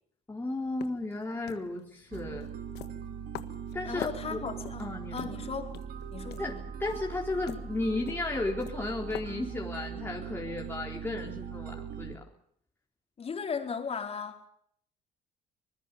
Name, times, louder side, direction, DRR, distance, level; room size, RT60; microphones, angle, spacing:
voice 1, 0.3-2.5 3.7-4.4 4.8-5.4 6.4-12.2, left 2 dB, 15° left, -1 dB, 3.9 m, -34 dB
sound 1, 0.6-9.8, left 12 dB, 80° left, 1.7 m, -47 dB
sound 2, 2.1-12.2, right 8 dB, 65° right, 2.5 m, -40 dB
voice 2, 3.8-5.7 6.1-6.6 13.2-14.5, left 6 dB, 35° left, 4 dB, 4.6 m, -37 dB
24.5 x 20.5 x 7.1 m, 0.67 s
cardioid pair, 110°, 17 cm